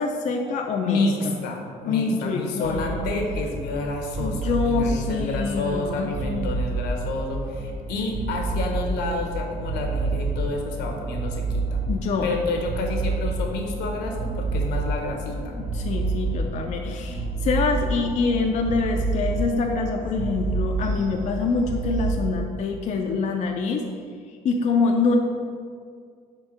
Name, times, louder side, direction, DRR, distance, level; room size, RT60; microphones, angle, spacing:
voice 1, 0.0-1.0 1.9-3.1 4.2-6.5 11.9-12.3 15.5-23.8 24.4-25.2, left 4 dB, 45° left, 2 dB, 0.5 m, -25 dB
voice 2, 0.8-11.8 12.2-15.5, left 2 dB, 80° left, 1 dB, 1.0 m, -29 dB
sound 1, 2.6-22.1, right 3 dB, 50° right, 1.0 m, -29 dB
4.5 x 4.3 x 4.9 m, 2.1 s
cardioid pair, 110°, 17 cm